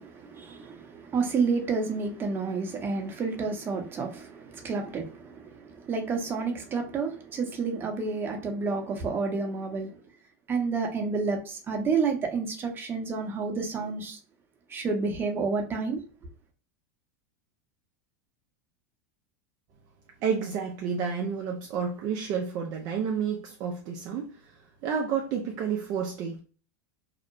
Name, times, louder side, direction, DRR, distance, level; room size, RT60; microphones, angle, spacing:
voice 1, 0.0-10.0 10.5-14.2 14.7-16.0, right 4 dB, 25° right, 0.8 m, -30 dB
voice 2, 20.2-24.3 24.8-26.4, right 6 dB, 45° right, 0.5 m, -30 dB
2.8 x 2.0 x 2.5 m
supercardioid pair, 115°, 8 cm